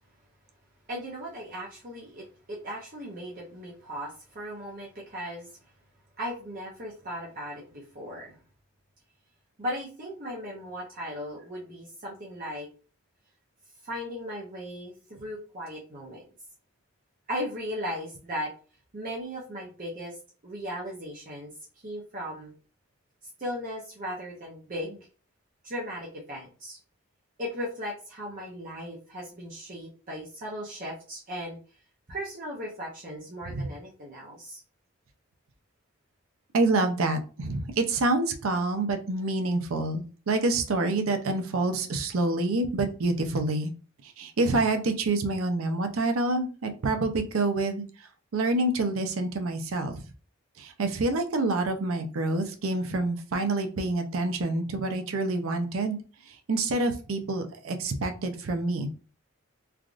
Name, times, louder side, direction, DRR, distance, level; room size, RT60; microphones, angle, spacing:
voice 1, 0.9-5.5 6.2-8.4 9.6-12.7 13.8-16.2 17.3-18.5 18.9-20.2 20.4-21.5 21.8-22.5 23.4-25.0 25.6-26.8 27.4-31.6 32.1-34.6, equal, 40° right, -4 dB, 0.6 m, -37 dB
voice 2, 36.5-43.7 44.0-47.8 48.3-50.0 50.6-56.0 56.3-58.9, right 2 dB, 85° right, 7 dB, 0.5 m, -27 dB
3.4 x 2.4 x 2.4 m, 0.38 s
head